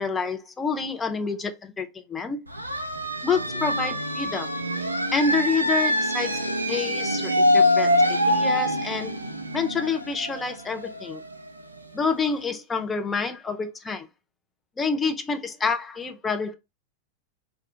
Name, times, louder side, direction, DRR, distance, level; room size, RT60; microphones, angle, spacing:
voice 1, 0.0-2.4 3.2-4.5 5.1-9.1 9.5-11.2 11.9-14.1 14.8-16.5, left 5 dB, 15° left, 0.4 m, -28 dB
sound 1, 2.5-12.0, left 1 dB, 85° right, 0.3 m, -25 dB
2.4 x 2.2 x 2.7 m
figure-of-eight pair, 90°, 0 cm